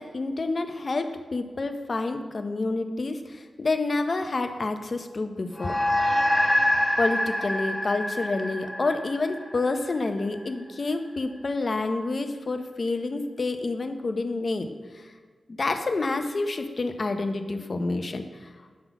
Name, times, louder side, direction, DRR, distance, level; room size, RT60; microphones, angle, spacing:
voice 1, 0.0-5.8 7.0-14.7 15.6-18.2, left 3 dB, 45° left, 7 dB, 0.6 m, -28 dB
sound 1, 5.6-10.2, left 1 dB, 5° left, 1.0 m, -26 dB
8.5 x 3.8 x 6.0 m, 1.5 s
wide cardioid pair, 105°, 0 cm